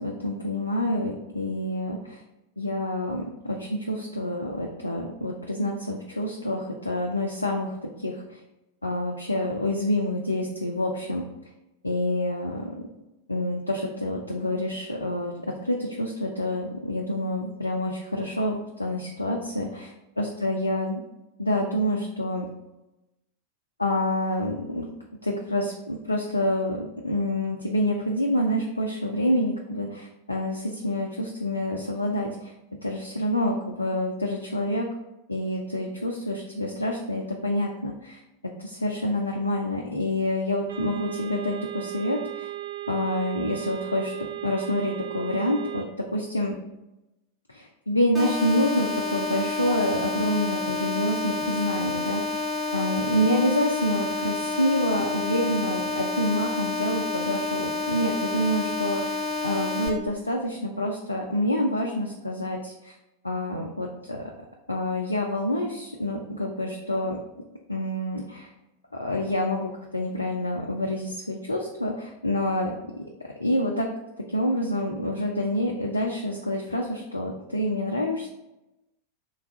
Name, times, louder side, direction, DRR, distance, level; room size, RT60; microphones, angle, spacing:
voice 1, 0.0-2.2 2.6-8.4 8.8-11.2 11.8-12.7 13.3-15.3 15.6-21.0 21.4-22.5 23.8-24.9 25.2-32.5 32.8-34.9 35.3-38.2 38.6-42.5 42.9-46.6 47.5-52.5 52.7-63.0 63.2-64.2 64.7-67.2 67.7-68.5 68.9-72.7 73.4-73.9 74.3-78.3, left 1 dB, 80° left, 0 dB, 0.3 m, -27 dB
sound 1, 40.7-45.8, right 14 dB, 65° right, 0.4 m, -36 dB
sound 2, 48.1-59.9, left 3 dB, 10° right, 1.1 m, -29 dB
3.2 x 2.3 x 3.5 m, 0.97 s
figure-of-eight pair, 90°, 0 cm